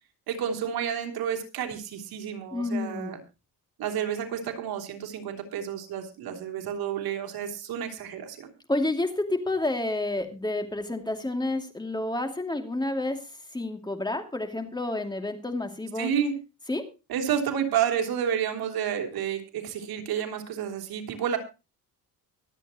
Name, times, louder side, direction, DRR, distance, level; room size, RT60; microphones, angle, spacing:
voice 1, 0.3-3.2 3.8-8.5 16.0-16.3 17.1-21.4, right 8 dB, 80° right, 3 dB, 3.2 m, -30 dB
voice 2, 2.5-3.2 8.7-13.2 13.5-16.1 16.7-16.8, left 2 dB, 10° left, 5 dB, 2.5 m, -29 dB
24.0 x 8.2 x 2.9 m, 0.30 s
cardioid pair, 115°, 36 cm